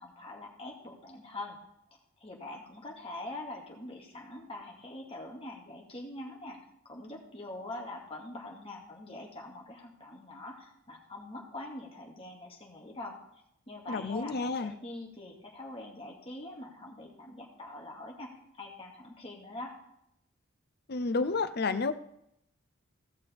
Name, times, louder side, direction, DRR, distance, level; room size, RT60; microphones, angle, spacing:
voice 1, 0.0-1.6 2.2-6.6 6.9-13.2 13.7-18.3 18.6-19.7, left 2 dB, 30° left, -1 dB, 2.4 m, -44 dB
voice 2, 13.9-14.7 20.9-21.9, left 3 dB, 50° left, 11 dB, 0.7 m, -30 dB
17.0 x 6.6 x 3.6 m, 0.78 s
head